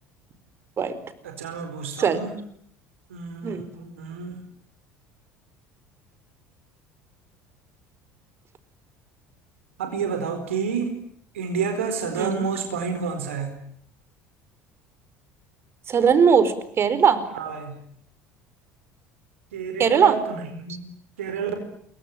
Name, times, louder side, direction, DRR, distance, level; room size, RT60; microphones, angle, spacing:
voice 1, 1.2-2.3 3.1-4.4 9.8-11.0 11.3-13.6 17.3-17.7 19.5-20.8 21.2-21.5, right 6 dB, 75° right, 6 dB, 4.4 m, -29 dB
voice 2, 12.2-12.5 15.9-17.2 19.8-20.2, right 7 dB, 35° right, 14 dB, 4.4 m, -19 dB
28.0 x 23.0 x 9.0 m, 0.66 s
figure-of-eight pair, 65°, 7 cm